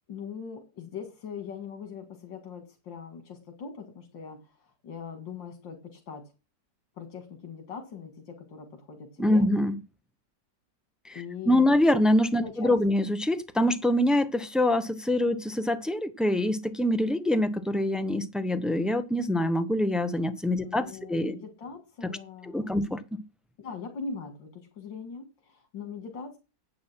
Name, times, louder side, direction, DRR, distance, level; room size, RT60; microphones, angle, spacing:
voice 1, 0.1-6.3 7.0-9.5 11.1-11.7 12.3-12.7 20.5-22.7 23.6-26.4, left 5 dB, 80° left, 2.8 m, -41 dB
voice 2, 9.2-9.8 11.0-21.3 22.0-22.1 22.4-23.2, left 1 dB, ahead, 0.6 m, -25 dB
10.5 x 8.8 x 5.8 m
omnidirectional pair, 2.0 m